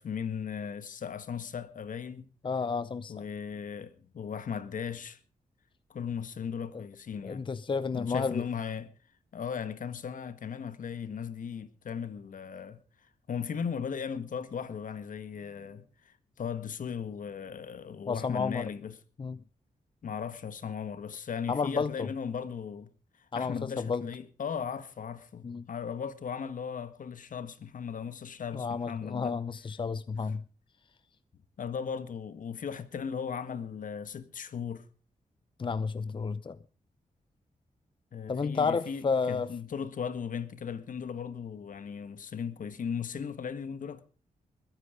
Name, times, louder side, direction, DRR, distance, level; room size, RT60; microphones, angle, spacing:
voice 1, 0.0-2.3 3.1-5.2 5.9-7.5 7.9-8.9 9.3-12.8 13.3-18.9 20.0-22.9 23.3-29.4 31.6-34.9 38.1-44.0, left 7 dB, 70° left, 1.6 m, -37 dB
voice 2, 2.4-3.2 6.7-6.8 7.2-8.5 18.1-18.7 19.2-19.4 21.5-22.1 23.3-24.0 25.4-25.7 28.5-30.4 35.6-36.6 38.3-39.5, left 5 dB, 35° left, 0.6 m, -31 dB
21.5 x 9.7 x 5.1 m
wide cardioid pair, 110°, 14 cm